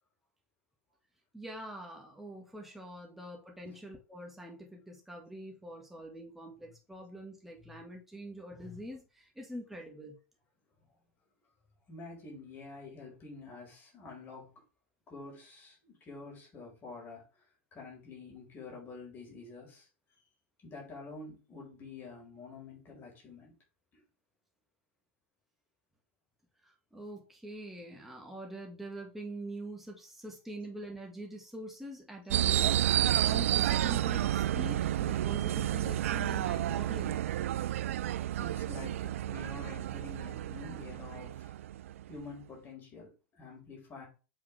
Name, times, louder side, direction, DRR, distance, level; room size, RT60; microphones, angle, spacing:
voice 1, 1.3-10.2 26.6-37.2, right 1 dB, 5° right, 0 dB, 1.9 m, -44 dB
voice 2, 11.9-14.5 15.1-17.2 17.7-19.9 20.6-23.5 23.9-24.0 38.4-41.5 42.1-44.1, left 3 dB, 30° left, -1 dB, 4.8 m, -48 dB
sound 1, 32.3-42.2, right 12 dB, 75° right, 0.4 m, -30 dB
7.9 x 5.4 x 3.5 m, 0.32 s
hypercardioid pair, 115°, 7 cm